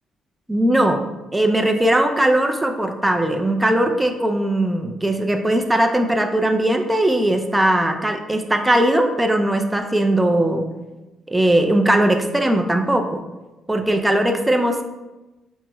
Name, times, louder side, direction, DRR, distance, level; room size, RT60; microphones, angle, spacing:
voice 1, 0.5-1.0 1.3-10.7 11.3-13.2 13.7-14.8, right 1 dB, 10° right, 5 dB, 0.4 m, -19 dB
5.7 x 2.0 x 2.2 m, 1.1 s
cardioid pair, 90°, 0 cm